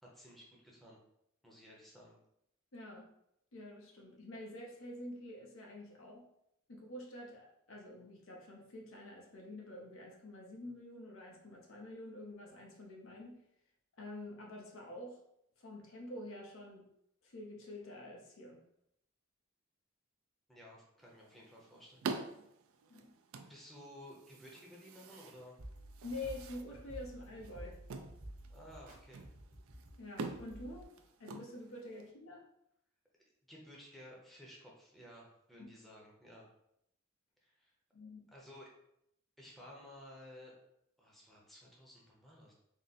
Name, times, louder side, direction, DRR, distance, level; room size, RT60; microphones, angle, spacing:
voice 1, 0.0-1.0 1.4-2.2 20.5-22.1 23.5-25.6 28.5-29.3 33.5-36.5 37.4-37.7 38.3-38.7 39.4-40.5 41.0-42.5, equal, ahead, -4 dB, 0.7 m, -55 dB
voice 2, 2.7-3.1 3.5-6.2 6.7-13.4 14.0-15.2 15.6-16.8 17.2-18.6 22.9-23.1 26.0-27.8 30.0-30.9 31.2-32.4 35.6-35.7 37.9-38.3, left 1 dB, 75° left, 0 dB, 0.8 m, -47 dB
sound 1, 21.0-32.1, right 4 dB, 75° right, 0.4 m, -47 dB
sound 2, 25.6-30.8, right 1 dB, 40° right, 0.8 m, -52 dB
3.7 x 2.1 x 4.1 m, 0.77 s
head